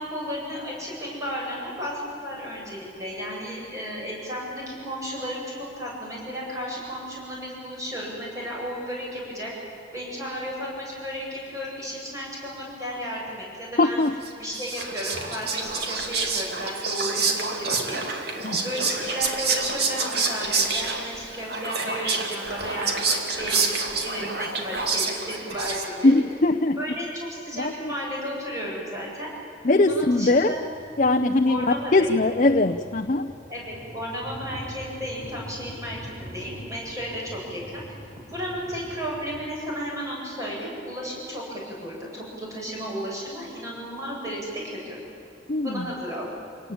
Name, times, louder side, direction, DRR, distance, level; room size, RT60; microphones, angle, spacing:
voice 1, 0.0-9.6 9.9-14.0 14.4-18.0 18.6-26.1 26.7-29.3 29.9-30.7 31.4-32.2 33.5-38.0 38.3-45.0 45.6-46.3, equal, 15° right, -4 dB, 8.0 m, -34 dB
voice 2, 13.8-14.1 18.4-18.6 26.0-26.8 27.5-27.7 29.6-30.6 31.0-31.6 31.9-33.3 45.5-45.9, left 2 dB, 40° left, 6 dB, 0.7 m, -21 dB
Whispering, 14.2-26.2, right 4 dB, 55° right, 2.5 m, -28 dB
sound 1, 29.8-39.5, equal, 40° right, 5.5 m, -43 dB
27.5 x 18.5 x 8.7 m, 2.8 s
head